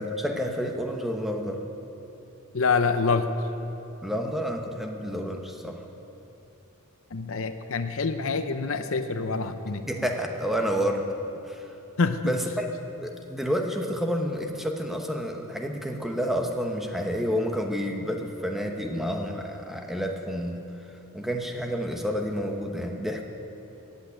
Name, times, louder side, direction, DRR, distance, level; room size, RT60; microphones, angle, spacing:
voice 1, 0.0-1.6 4.0-5.8 9.9-11.1 11.5-11.7 12.3-12.7 13.0-20.6 21.1-23.2, equal, ahead, 2 dB, 0.9 m, -29 dB
voice 2, 2.5-3.3 7.1-9.9 12.0-12.3, left 4 dB, 65° left, 9 dB, 0.7 m, -26 dB
14.5 x 8.4 x 8.7 m, 3.0 s
head